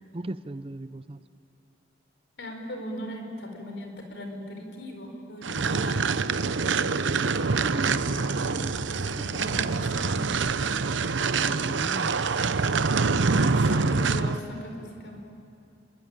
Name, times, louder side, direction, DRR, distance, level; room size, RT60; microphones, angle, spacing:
voice 1, 0.1-1.2 5.6-5.9 7.0-8.9 11.3-12.2, right 2 dB, 30° right, 13 dB, 0.6 m, -36 dB
voice 2, 2.4-6.2 8.8-10.3 13.3-15.2, left 1 dB, 70° left, 3 dB, 4.7 m, -38 dB
sound 1, 5.4-14.4, right 4 dB, 85° right, 0.8 m, -25 dB
29.5 x 22.0 x 9.1 m, 2.7 s
head